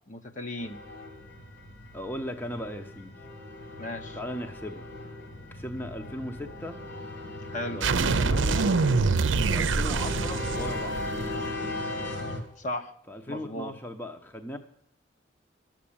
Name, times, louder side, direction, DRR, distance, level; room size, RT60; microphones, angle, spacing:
voice 1, 0.1-0.8 3.8-4.2 7.5-7.8 12.6-12.9 13.3-13.7, left 1 dB, 40° left, 5 dB, 1.0 m, -35 dB
sound 1, 0.6-12.4, left 2 dB, 60° left, 2.6 m, -38 dB
voice 2, 1.9-3.1 4.1-4.9 5.5-6.8 7.7-8.7 9.5-11.0 13.1-14.6, equal, 10° left, 6 dB, 0.8 m, -37 dB
sound 2, 7.8-11.5, right 4 dB, 80° right, 0.6 m, -25 dB
12.5 x 7.6 x 8.6 m, 0.69 s
head